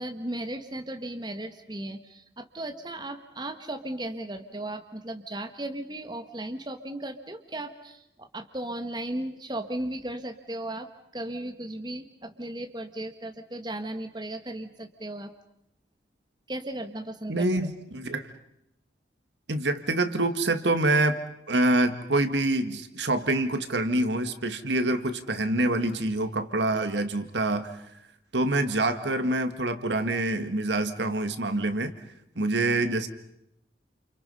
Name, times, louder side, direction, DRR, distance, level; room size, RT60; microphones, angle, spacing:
voice 1, 0.0-10.9 11.1-15.3 16.5-17.5, right 1 dB, 25° right, 6 dB, 1.6 m, -36 dB
voice 2, 17.3-18.3 19.5-21.2 21.5-27.8 28.3-32.0 32.4-33.1, right 2 dB, 75° right, 9 dB, 1.8 m, -26 dB
29.5 x 29.0 x 5.5 m, 0.77 s
head